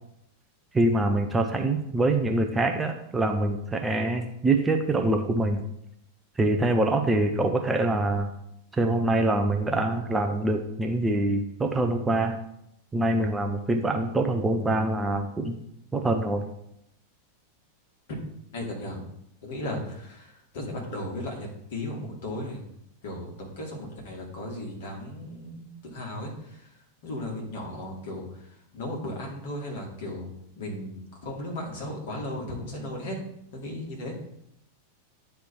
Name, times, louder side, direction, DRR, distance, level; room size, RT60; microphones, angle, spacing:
voice 1, 0.7-5.6 6.4-8.3 8.7-12.4 12.9-15.6 15.9-16.5, right 2 dB, 10° right, 4 dB, 0.6 m, -25 dB
voice 2, 18.5-19.0 19.4-22.6 23.0-26.7 27.0-28.2 28.7-30.3 30.6-33.2 33.5-34.2, left 1 dB, 55° left, -1 dB, 2.2 m, -36 dB
9.4 x 3.4 x 4.6 m, 0.78 s
figure-of-eight pair, 90°, 0 cm